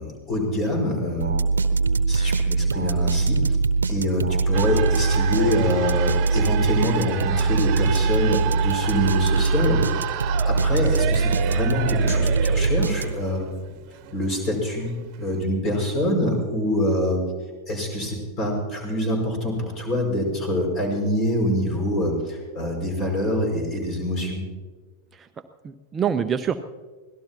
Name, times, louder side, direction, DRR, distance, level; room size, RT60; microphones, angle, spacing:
voice 1, 0.0-1.4 2.1-3.6 3.9-9.8 10.2-13.5 14.1-14.9 15.2-17.2 17.7-24.4, left 1 dB, 30° left, 1 dB, 5.7 m, -25 dB
sound 1, 1.2-13.4, right 4 dB, 70° right, 1.0 m, -22 dB
sound 2, 4.5-15.4, right 11 dB, 40° right, 1.3 m, -32 dB
voice 2, 25.1-26.6, right 8 dB, 20° right, 8 dB, 0.7 m, -27 dB
24.5 x 18.0 x 2.9 m, 1.4 s
figure-of-eight pair, 90°, 0 cm